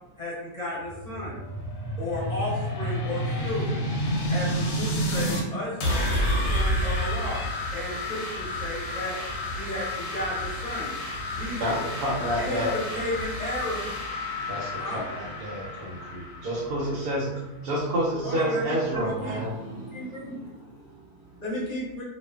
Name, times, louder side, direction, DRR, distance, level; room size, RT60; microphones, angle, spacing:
voice 1, 0.2-1.4 2.0-3.9 4.3-7.4 7.7-9.2 9.5-10.9 11.3-11.8 12.4-13.8 14.8-15.0 18.2-18.7 19.0-19.4 19.9-20.4 21.4-22.0, left 1 dB, 35° left, -7 dB, 0.8 m, -33 dB
sound 1, 0.8-5.4 5.8-17.4, equal, 65° left, 0.9 m, -30 dB
voice 2, 11.6-12.8 14.5-17.3 17.6-19.6, right 1 dB, 85° right, -5 dB, 1.1 m, -29 dB
voice 3, 13.3-13.9 14.2-14.9 15.6-16.5 18.8-21.4, right 2 dB, 30° right, -8 dB, 1.0 m, -44 dB
2.5 x 2.3 x 2.2 m, 0.96 s
omnidirectional pair, 1.6 m